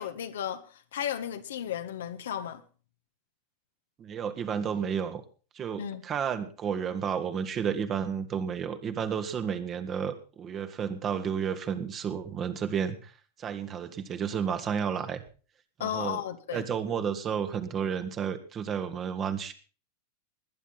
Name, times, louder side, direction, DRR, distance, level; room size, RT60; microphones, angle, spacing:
voice 1, 0.0-2.6 5.8-6.0 15.8-16.7, left 9 dB, 60° left, 1.5 m, -34 dB
voice 2, 4.0-5.2 5.5-13.1 13.4-15.2 15.8-16.2 16.5-19.5, right 7 dB, 25° right, 1.7 m, -31 dB
20.0 x 10.0 x 4.2 m
figure-of-eight pair, 90°, 0 cm